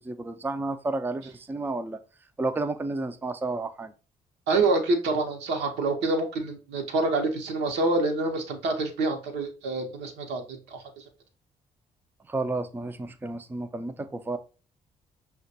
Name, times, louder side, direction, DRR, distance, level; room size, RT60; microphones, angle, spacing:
voice 1, 0.0-2.0 2.4-3.9 12.3-14.4, right 2 dB, 10° right, 9 dB, 0.4 m, -31 dB
voice 2, 4.5-11.1, right 3 dB, 75° right, 3 dB, 0.8 m, -27 dB
5.6 x 2.2 x 2.7 m, 0.34 s
hypercardioid pair, 45°, 18 cm